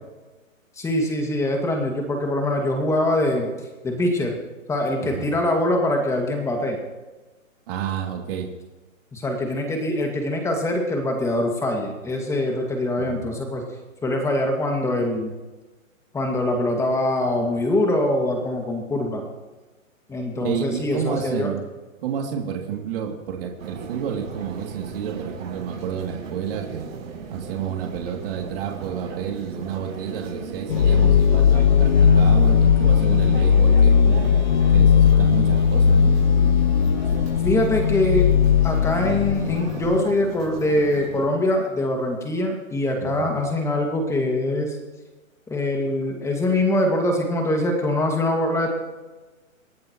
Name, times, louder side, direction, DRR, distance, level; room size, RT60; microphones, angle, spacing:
voice 1, 0.8-3.5 3.8-4.4 4.7-6.8 9.1-13.6 14.0-15.3 16.1-19.2 20.1-21.5 31.3-31.7 37.4-38.3 38.6-44.8 45.5-48.7, left 1 dB, 5° left, 2 dB, 2.1 m, -23 dB
voice 2, 5.0-5.3 7.7-8.5 12.9-13.3 20.4-21.7 22.0-26.9 27.3-34.3 34.7-36.1 43.0-43.3, right 8 dB, 40° right, 1 dB, 2.9 m, -30 dB
sound 1, 23.6-41.3, right 5 dB, 65° right, 6.1 m, -37 dB
sound 2, 30.7-40.0, left 7 dB, 35° left, 0.4 m, -17 dB
27.5 x 11.0 x 3.1 m, 1.2 s
hypercardioid pair, 145°, 41 cm